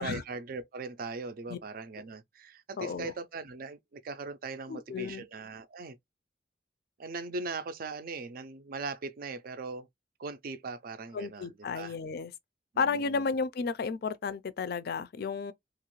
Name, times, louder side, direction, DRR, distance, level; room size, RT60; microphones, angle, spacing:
voice 1, 0.0-6.0 7.0-9.9 10.2-12.0 12.7-13.2, right 3 dB, 55° right, 0.5 m, -40 dB
voice 2, 2.8-3.1 4.7-5.2 11.1-12.3 12.8-15.5, left 5 dB, 60° left, 0.4 m, -33 dB
2.9 x 2.4 x 3.0 m
head